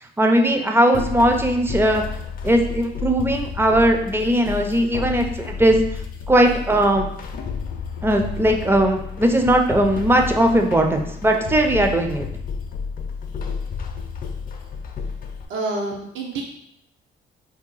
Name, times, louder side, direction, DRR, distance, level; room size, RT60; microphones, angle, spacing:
voice 1, 0.2-2.0 2.4-5.8 6.3-7.1 8.0-12.3, right 1 dB, 10° right, 4 dB, 0.4 m, -18 dB
sound 1, 0.9-15.5, left 6 dB, 45° left, 0.4 m, -31 dB
voice 2, 15.5-16.4, right 3 dB, 75° right, 0 dB, 0.7 m, -27 dB
2.8 x 2.2 x 3.8 m, 0.73 s
cardioid pair, 90°, 20 cm